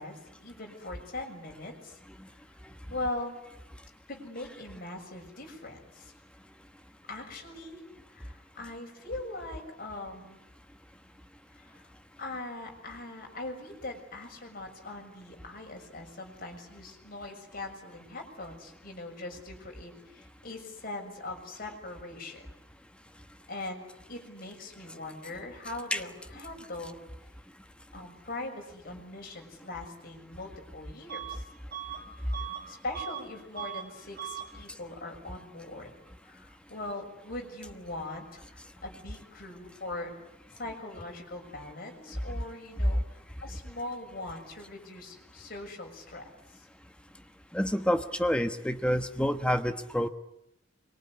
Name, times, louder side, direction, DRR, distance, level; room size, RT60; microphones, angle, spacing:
voice 1, 0.0-2.0 2.3-2.4 2.9-3.4 4.1-6.1 7.1-7.8 8.1-10.4 11.5-11.9 12.2-22.5 23.5-27.0 27.9-31.4 32.2-32.3 32.7-35.9 36.2-40.1 40.6-46.2 46.5-46.7, left 2 dB, 50° left, 2 dB, 6.7 m, -41 dB
Bus / Alarm, 31.1-31.4 31.7-33.3 33.5-33.9 34.2-34.5, right 11 dB, 55° right, 2.2 m, -39 dB
voice 2, 47.5-50.1, equal, 5° left, 8 dB, 1.2 m, -28 dB
26.0 x 23.5 x 9.8 m, 0.85 s
head